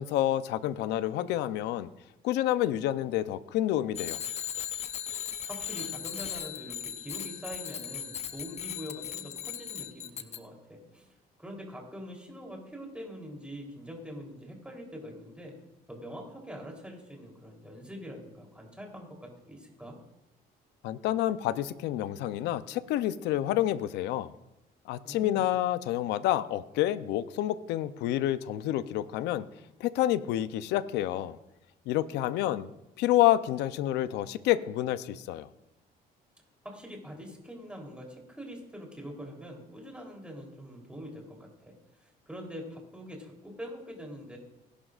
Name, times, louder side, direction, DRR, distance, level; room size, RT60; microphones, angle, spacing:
voice 1, 0.0-1.9 2.2-4.2 20.8-24.3 24.9-29.5 29.8-31.4 31.9-32.7 33.0-35.5, left 13 dB, 85° left, 14 dB, 0.6 m, -28 dB
Bicycle bell, 3.9-10.4, left 9 dB, 40° left, 0.7 m, -37 dB
voice 2, 5.2-11.1 11.4-15.5 15.9-20.0 25.0-25.5 36.6-41.7 42.3-44.4, equal, 5° right, 0 dB, 3.5 m, -44 dB
21.0 x 11.5 x 2.5 m, 0.90 s
cardioid pair, 110°, 17 cm